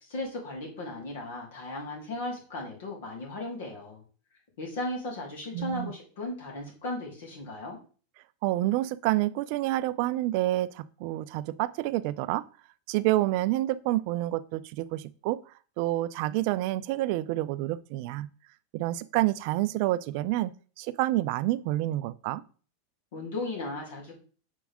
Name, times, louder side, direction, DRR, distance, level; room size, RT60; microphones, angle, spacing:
voice 1, 0.1-4.0 4.6-7.8 23.1-24.1, left 2 dB, 75° left, -1 dB, 3.4 m, -36 dB
voice 2, 5.5-5.9 8.4-12.4 12.9-15.4 15.8-18.3 18.7-20.5 20.8-22.4, right 16 dB, 60° right, 15 dB, 0.4 m, -28 dB
7.3 x 4.6 x 3.6 m, 0.39 s
hypercardioid pair, 120°, 0 cm